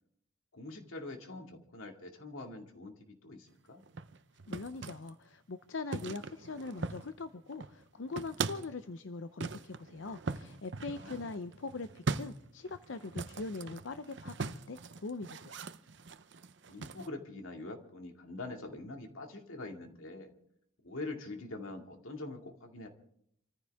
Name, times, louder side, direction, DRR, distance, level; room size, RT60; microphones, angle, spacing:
voice 1, 0.5-3.8 10.9-11.3 16.7-20.3 20.8-22.9, left 2 dB, 85° left, 4 dB, 2.3 m, -44 dB
sound 1, 3.8-5.1 5.9-7.2 7.5-8.7 9.4-17.1, right 4 dB, 60° right, 0.7 m, -41 dB
voice 2, 4.5-15.6, left 3 dB, 65° left, 10 dB, 0.6 m, -42 dB
27.5 x 14.5 x 3.5 m, 0.69 s
head